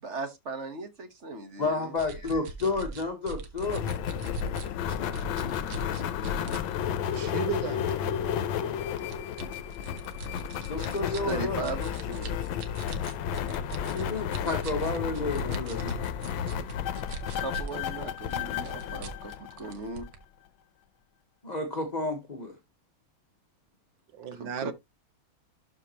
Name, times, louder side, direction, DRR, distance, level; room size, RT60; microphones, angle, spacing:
voice 1, 0.0-1.9 8.5-8.8 10.8-12.4 17.4-20.1 24.3-24.7, right 3 dB, 40° right, 1.4 m, -38 dB
voice 2, 1.6-3.9 10.6-11.6 13.9-16.0 21.4-22.5, left 3 dB, 25° left, 1.2 m, -31 dB
sound 1, 2.0-6.6 7.1-7.3 7.9-8.3 9.0-17.8 18.1-20.2, right 3 dB, 80° right, 2.2 m, -41 dB
sound 2, 3.6-20.1, left 9 dB, 75° left, 1.5 m, -32 dB
voice 3, 7.1-8.2 24.1-24.7, right 9 dB, 65° right, 1.7 m, -35 dB
12.0 x 5.2 x 3.0 m
omnidirectional pair, 2.3 m